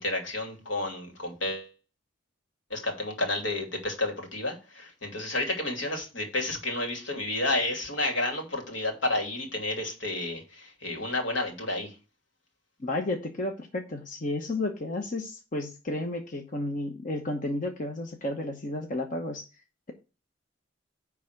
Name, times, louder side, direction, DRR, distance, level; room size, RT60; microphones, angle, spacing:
voice 1, 0.0-1.7 2.7-11.9, left 2 dB, 75° left, 2 dB, 2.6 m, -31 dB
voice 2, 12.8-19.5, left 1 dB, 45° left, 3 dB, 1.1 m, -32 dB
10.5 x 3.6 x 6.5 m, 0.32 s
head